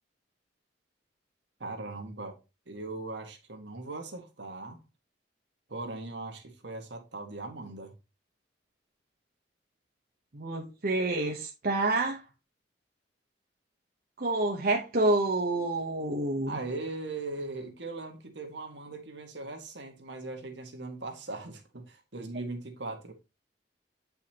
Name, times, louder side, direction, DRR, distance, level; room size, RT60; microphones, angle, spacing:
voice 1, 1.6-2.4 2.7-4.8 5.7-7.9 16.5-23.1, right 2 dB, 75° right, 1.7 m, -39 dB
voice 2, 10.3-12.2 14.2-16.5, right 2 dB, 55° right, 1.1 m, -28 dB
8.9 x 5.6 x 2.9 m
head